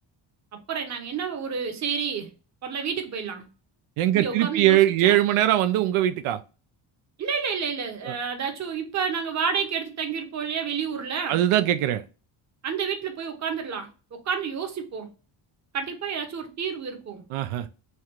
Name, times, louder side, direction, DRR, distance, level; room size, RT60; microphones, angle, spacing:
voice 1, 0.7-2.3 2.6-3.5 4.1-5.2 7.2-11.4 12.6-15.1 15.7-17.2, right 6 dB, 35° right, 0.8 m, -30 dB
voice 2, 4.0-6.4 11.3-12.0 17.3-17.6, right 13 dB, 85° right, 0.6 m, -21 dB
3.3 x 2.4 x 4.3 m
cardioid pair, 165°, 49 cm